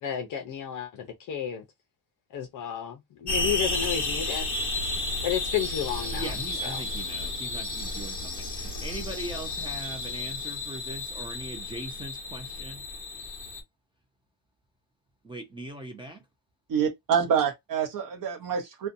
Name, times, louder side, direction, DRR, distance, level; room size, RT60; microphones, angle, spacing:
voice 1, 0.0-1.6 2.3-4.5 5.2-6.3 6.6-7.0, left 9 dB, 50° left, 0.6 m, -32 dB
sound 1, 3.3-13.6, left 2 dB, 20° left, 1.0 m, -32 dB
voice 2, 6.1-12.8 15.2-16.2, right 1 dB, 15° right, 0.4 m, -40 dB
voice 3, 16.7-18.9, right 7 dB, 55° right, 0.7 m, -26 dB
2.6 x 2.2 x 2.5 m
cardioid pair, 170°, 41 cm